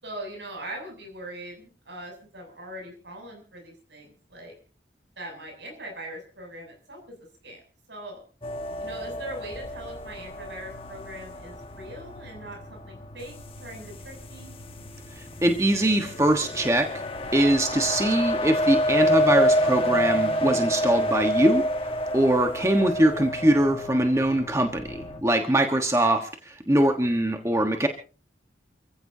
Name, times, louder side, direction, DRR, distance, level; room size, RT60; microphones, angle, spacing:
voice 1, 0.0-4.5 5.2-7.2 7.4-7.6 7.9-8.2 8.8-13.3 13.6-14.5, right 1 dB, 85° right, 2 dB, 8.0 m, -41 dB
sound 1, 8.4-25.2, equal, 30° left, 1.5 m, -28 dB
voice 2, 15.4-17.0 17.3-21.6 22.1-27.9, right 1 dB, 15° right, 4 dB, 1.4 m, -22 dB
29.0 x 15.0 x 2.8 m, 0.37 s
head